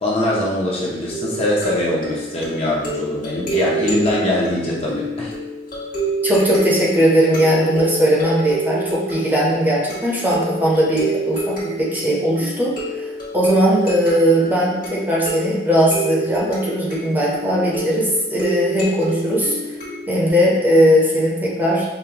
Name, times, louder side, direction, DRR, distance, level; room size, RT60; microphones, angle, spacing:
voice 1, 0.0-5.3, left 1 dB, 35° left, -5 dB, 0.7 m, -22 dB
sound 1, 1.1-20.3, right 2 dB, 50° left, 1.3 m, -28 dB
voice 2, 6.2-19.6 20.1-21.8, equal, 10° right, -5 dB, 0.7 m, -18 dB
5.3 x 2.1 x 2.8 m, 1.0 s
head